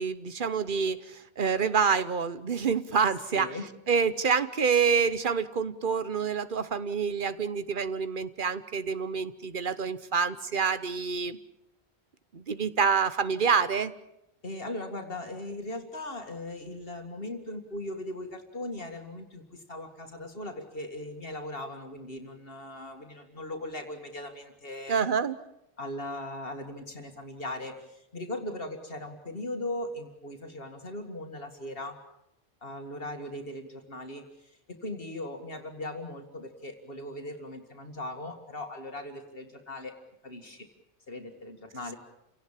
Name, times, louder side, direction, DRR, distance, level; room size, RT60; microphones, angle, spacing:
voice 1, 0.0-3.5 3.9-11.4 12.3-13.9 24.9-25.4, right 6 dB, 50° right, 14 dB, 1.2 m, -27 dB
voice 2, 3.3-3.7 14.4-25.0 25.8-32.0 32.6-40.0 40.2-40.7 41.1-42.0, left 1 dB, 55° left, 5 dB, 2.3 m, -39 dB
29.0 x 17.5 x 7.4 m, 0.84 s
omnidirectional pair, 1.1 m